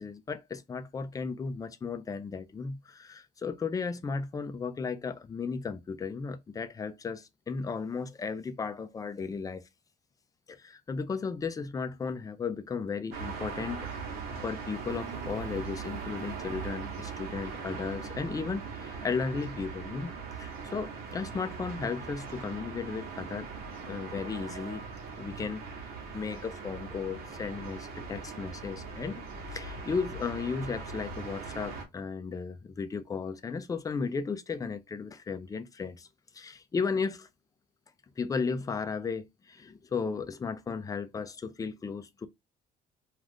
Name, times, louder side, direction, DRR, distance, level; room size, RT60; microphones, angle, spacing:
voice 1, 0.0-9.6 10.5-23.5 23.9-24.8 25.2-25.6 26.1-29.2 29.5-36.1 36.3-37.3 38.2-42.3, left 5 dB, 20° left, 0.4 m, -35 dB
sound 1, 13.1-31.8, right 5 dB, 65° right, 1.0 m, -40 dB
2.4 x 2.4 x 3.4 m
cardioid pair, 110°, 17 cm